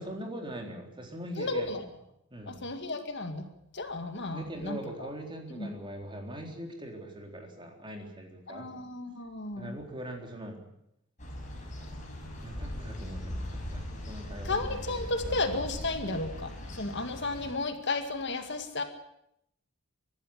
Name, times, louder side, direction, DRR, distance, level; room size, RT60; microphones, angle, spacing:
voice 1, 0.0-1.8 2.3-2.6 4.3-8.7 9.6-10.6 12.4-14.8 15.3-15.4, equal, 20° right, 2 dB, 3.9 m, -41 dB
voice 2, 1.4-1.9 2.5-3.5 3.7-5.1 5.5-5.7 8.5-9.8 14.4-18.8, left 2 dB, 50° left, 7 dB, 2.0 m, -33 dB
sound 1, 11.2-17.5, left 1 dB, 35° left, 5.9 m, -39 dB
24.5 x 12.5 x 9.9 m, 0.79 s
head